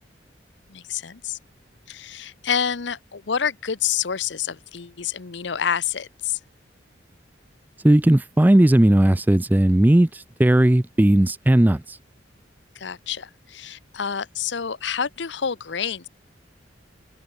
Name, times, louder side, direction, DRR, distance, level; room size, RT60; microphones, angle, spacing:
voice 1, 0.7-1.4 1.9-6.4 12.8-16.1, left 7 dB, 70° left, 0.8 m, -28 dB
voice 2, 7.8-12.0, right 1 dB, 10° right, 0.3 m, -17 dB
head